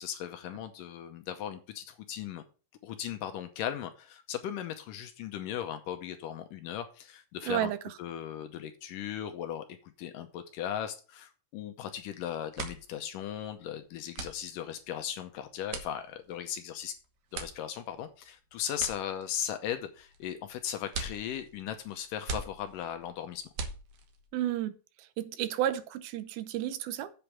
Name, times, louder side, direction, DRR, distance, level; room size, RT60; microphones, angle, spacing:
voice 1, 0.0-2.4 2.8-7.7 8.0-9.6 10.0-17.0 17.3-23.5, left 10 dB, 75° left, 2.2 m, -37 dB
voice 2, 7.5-7.8 24.3-24.7 25.2-27.1, right 12 dB, 90° right, 2.7 m, -31 dB
sound 1, 11.8-12.1 12.4-24.3, right 4 dB, 60° right, 1.7 m, -42 dB
8.0 x 5.1 x 7.4 m
omnidirectional pair, 4.2 m